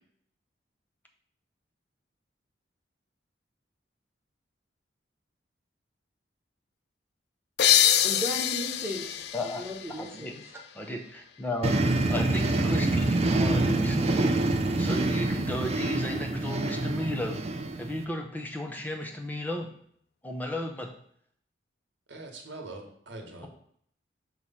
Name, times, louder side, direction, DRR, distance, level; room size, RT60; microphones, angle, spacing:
sound 1, 7.6-11.0, left 11 dB, 55° left, 0.3 m, -26 dB
voice 1, 8.0-10.6, equal, 15° right, -2 dB, 1.2 m, -36 dB
voice 2, 10.0-10.3 10.7-11.8 12.1-14.3 14.8-17.4 17.8-19.7 20.2-20.9, left 1 dB, 10° left, 2 dB, 0.7 m, -34 dB
sound 2, 11.6-18.0, right 2 dB, 30° right, 0.5 m, -26 dB
voice 3, 22.1-23.5, right 2 dB, 65° right, 3 dB, 1.2 m, -42 dB
6.1 x 3.2 x 5.5 m, 0.65 s
head